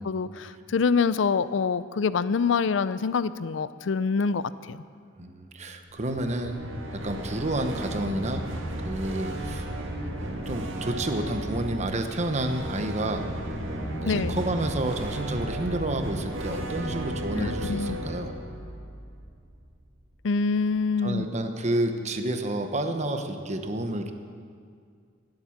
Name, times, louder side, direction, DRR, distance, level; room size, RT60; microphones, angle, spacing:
voice 1, 0.0-4.8 14.0-14.4 17.4-18.0 20.2-21.3, left 5 dB, 70° left, 16 dB, 0.5 m, -26 dB
voice 2, 5.2-6.6 6.9-8.5 8.8-9.7 10.0-13.3 14.0-18.4 21.0-24.1, right 1 dB, 35° right, 6 dB, 1.0 m, -30 dB
sound 1, 5.9-19.9, right 1 dB, 90° right, 1.7 m, -34 dB
18.0 x 7.9 x 7.2 m, 2.2 s
head